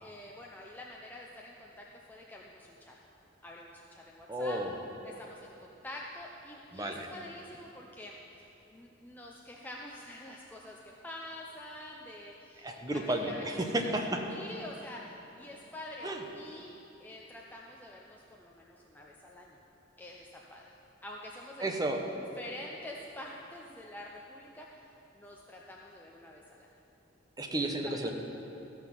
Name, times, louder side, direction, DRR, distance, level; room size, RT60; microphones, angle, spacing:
voice 1, 0.0-2.9 3.4-4.6 5.0-13.4 13.7-13.9 14.3-16.7 17.0-19.6 20.0-20.7 21.0-21.8 22.2-24.8 25.1-26.7 27.5-27.6 28.0-28.1, left 1 dB, 10° left, -2 dB, 0.6 m, -47 dB
voice 2, 4.3-4.8 6.7-7.1 12.6-14.2 16.0-16.2 21.6-22.0 27.4-28.1, right 1 dB, 20° right, 3 dB, 0.8 m, -32 dB
14.5 x 5.9 x 5.9 m, 2.9 s
head